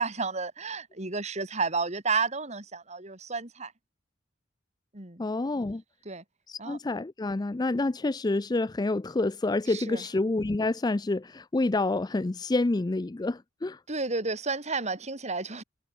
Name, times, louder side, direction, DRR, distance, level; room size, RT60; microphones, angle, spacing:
voice 1, 0.0-3.7 4.9-5.3 6.0-6.2 6.6-6.8 9.7-10.0 13.9-15.6, right 4 dB, 35° right, 2.9 m, -31 dB
voice 2, 5.2-5.8 6.5-13.8, left 2 dB, 20° left, 0.4 m, -28 dB
head